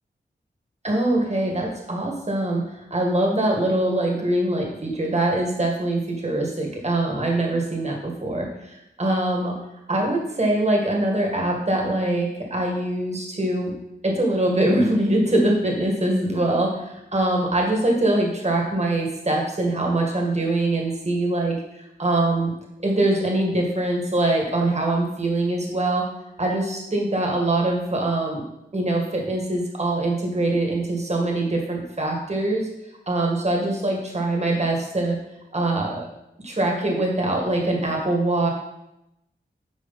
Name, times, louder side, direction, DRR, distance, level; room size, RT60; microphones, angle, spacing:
voice 1, 0.8-9.6 9.9-13.7 14.0-22.5 22.8-26.1 26.4-28.4 28.7-32.7 33.1-35.2 35.5-36.1 36.4-38.5, right 1 dB, 35° right, 0 dB, 1.8 m, -23 dB
9.7 x 4.6 x 4.2 m, 0.87 s
cardioid pair, 55°, 19 cm